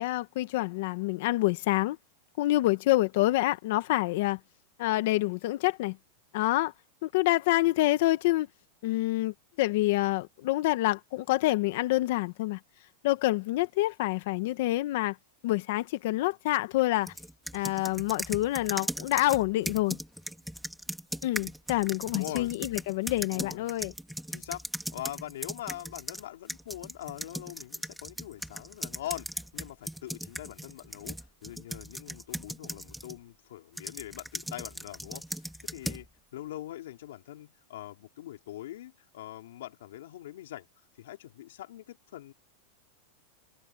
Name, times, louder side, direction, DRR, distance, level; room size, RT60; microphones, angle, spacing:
voice 1, 0.0-2.0 2.4-4.4 4.8-6.0 6.3-6.7 7.0-8.5 8.8-12.6 13.0-15.2 15.4-17.1 17.5-20.0 21.2-23.9, left 18 dB, 50° left, 1.1 m, -27 dB
sound 1, 17.1-26.2 26.5-33.2 33.8-36.1, equal, ahead, 1.8 m, -38 dB
voice 2, 22.1-22.5 23.3-23.7 24.3-24.6 24.9-36.1 36.3-40.7 41.0-42.3, left 14 dB, 70° left, 4.5 m, -42 dB
supercardioid pair, 175°, 0 cm